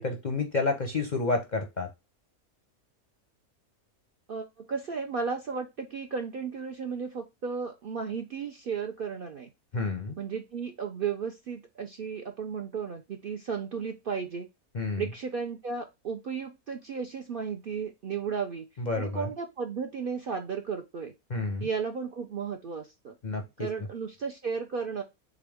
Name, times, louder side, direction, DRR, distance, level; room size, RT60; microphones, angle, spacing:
voice 1, 0.0-1.9 9.7-10.1 14.7-15.1 18.8-19.3 21.3-21.7 23.2-23.7, left 3 dB, 45° left, 4 dB, 0.6 m, -30 dB
voice 2, 4.3-9.5 10.2-14.5 15.0-18.7 19.0-21.1 21.6-23.2 23.6-25.0, right 6 dB, 60° right, 4 dB, 0.6 m, -34 dB
3.8 x 3.6 x 3.4 m, 0.23 s
omnidirectional pair, 1.5 m